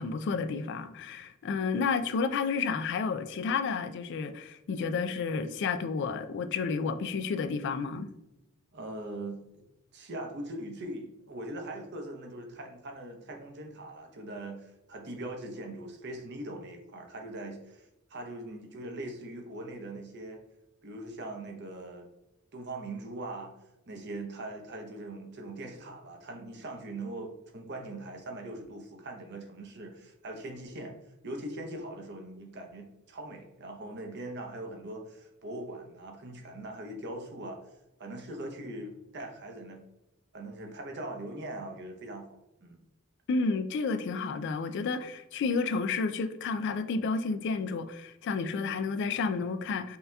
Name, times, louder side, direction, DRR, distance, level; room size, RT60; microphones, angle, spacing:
voice 1, 0.0-8.1 43.3-50.0, left 4 dB, 60° left, 0.3 m, -31 dB
voice 2, 8.7-9.6 9.9-20.4 20.8-22.1 22.5-23.5 23.9-30.9 31.2-37.6 38.0-39.8 40.3-42.8, right 1 dB, 55° right, 0.7 m, -41 dB
5.4 x 2.8 x 2.2 m
head